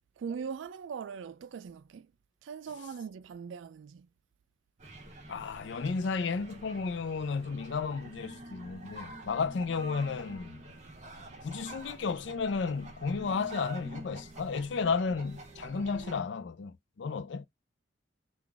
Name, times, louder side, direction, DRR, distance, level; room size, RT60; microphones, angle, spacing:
voice 1, 0.2-2.1 2.4-4.1, right 6 dB, 85° right, 0.4 m, -40 dB
sound 1, 4.8-16.2, right 2 dB, 40° right, 0.9 m, -47 dB
voice 2, 5.3-10.7 11.4-17.4, left 5 dB, 70° left, 0.4 m, -33 dB
3.8 x 2.4 x 3.4 m
head